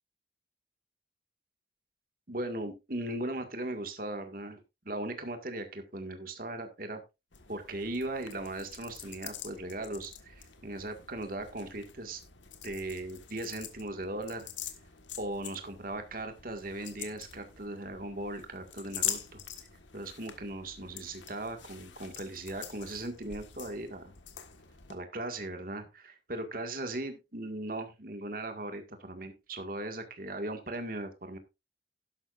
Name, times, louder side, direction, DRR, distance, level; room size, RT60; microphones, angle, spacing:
voice 1, 2.3-7.0 7.5-12.2 12.6-14.5 15.2-19.4 19.9-24.1 24.9-31.4, right 1 dB, 50° right, 6 dB, 1.9 m, -38 dB
sound 1, 7.3-25.0, left 10 dB, 85° left, 1.6 m, -44 dB
12.0 x 11.5 x 2.5 m, 0.25 s
head